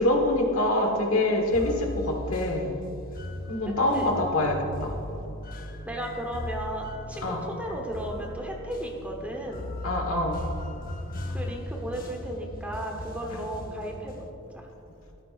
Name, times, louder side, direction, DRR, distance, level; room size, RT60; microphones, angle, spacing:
voice 1, 0.0-2.7 3.5-4.9 7.2-7.4 9.8-10.4, left 1 dB, 75° left, 2 dB, 1.5 m, -25 dB
sound 1, 1.5-14.3, left 1 dB, 40° left, 0.8 m, -38 dB
voice 2, 3.6-4.1 5.9-9.7 11.3-14.3 14.5-14.7, right 1 dB, 5° right, 0 dB, 1.0 m, -35 dB
13.5 x 13.0 x 2.5 m, 2.9 s
head